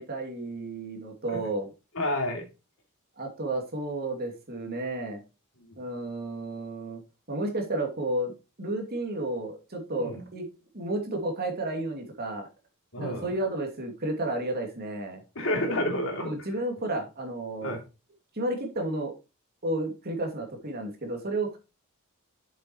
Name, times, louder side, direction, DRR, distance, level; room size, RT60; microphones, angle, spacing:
voice 1, 0.0-1.7 3.2-5.2 5.8-7.0 7.3-10.5 10.7-12.5 13.0-15.2 16.2-17.8 18.3-19.1 19.6-21.6, right 2 dB, 45° right, 3 dB, 2.5 m, -32 dB
voice 2, 1.9-2.4 5.7-5.8 10.0-10.2 12.9-13.3 15.3-16.3 17.6-17.8, left 1 dB, 65° left, 1 dB, 3.0 m, -29 dB
7.5 x 7.3 x 3.1 m, 0.28 s
head